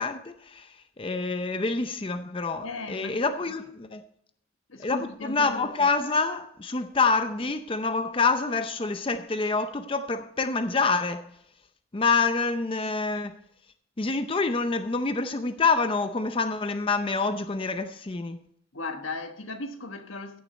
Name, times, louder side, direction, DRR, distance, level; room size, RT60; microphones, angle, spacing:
voice 1, 0.0-4.0 4.8-11.2 11.9-13.4 14.0-18.4, left 4 dB, 25° left, 0.5 m, -27 dB
voice 2, 2.6-3.6 4.7-5.9 18.7-20.4, left 3 dB, 85° left, 1.4 m, -37 dB
15.0 x 7.0 x 4.3 m
head